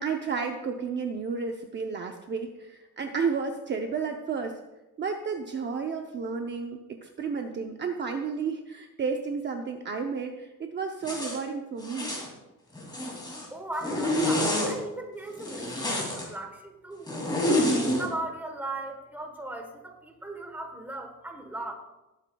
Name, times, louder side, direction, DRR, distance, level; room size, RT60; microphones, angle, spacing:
voice 1, 0.0-4.6 5.0-12.2, right 5 dB, 35° right, 4 dB, 0.6 m, -32 dB
Zipper (clothing), 11.0-11.4 11.8-12.3 12.8-13.5 13.8-14.7 15.4-16.3 17.1-18.1, left 1 dB, 15° left, 2.6 m, -28 dB
voice 2, 13.5-17.1 17.7-21.7, right 2 dB, 5° right, 4 dB, 1.2 m, -38 dB
19.0 x 8.6 x 2.3 m, 1.0 s
cardioid pair, 170°, 32 cm